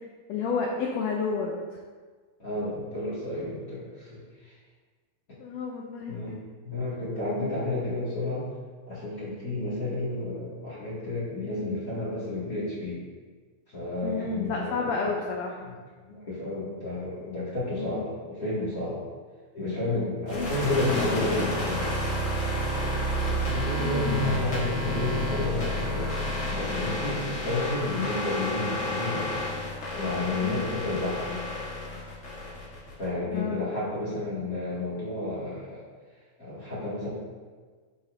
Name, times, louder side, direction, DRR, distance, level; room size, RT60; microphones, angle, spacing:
voice 1, 0.3-1.5 5.4-6.4 14.0-15.8 17.8-17.9 20.3-20.6 20.9-21.1 23.8-24.4 30.4-30.7 33.3-33.6, left 5 dB, 85° left, 0 dB, 1.5 m, -31 dB
voice 2, 2.4-4.5 6.1-6.4 6.6-8.5 8.9-13.0 13.7-15.1 15.6-15.7 16.1-19.0 19.5-21.9 23.3-26.1 26.5-29.2 29.9-31.4 33.0-35.8 36.4-37.1, left 2 dB, 30° left, -10 dB, 1.8 m, -31 dB
sound 1, 20.3-33.1, equal, 60° left, 0.7 m, -30 dB
12.0 x 4.1 x 2.6 m, 1.5 s
omnidirectional pair, 3.7 m